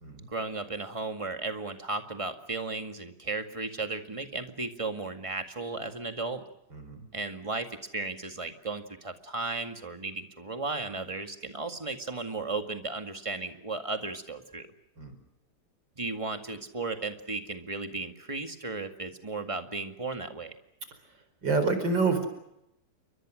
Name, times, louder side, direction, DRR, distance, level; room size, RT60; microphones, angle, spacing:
voice 1, 0.3-6.4 7.1-7.7 7.9-14.7 16.0-20.5, right 3 dB, 20° right, 6 dB, 2.0 m, -35 dB
voice 2, 6.7-7.1 15.0-15.2 21.4-22.3, right 4 dB, 85° right, 8 dB, 5.2 m, -27 dB
29.5 x 23.5 x 6.4 m, 0.83 s
omnidirectional pair, 2.0 m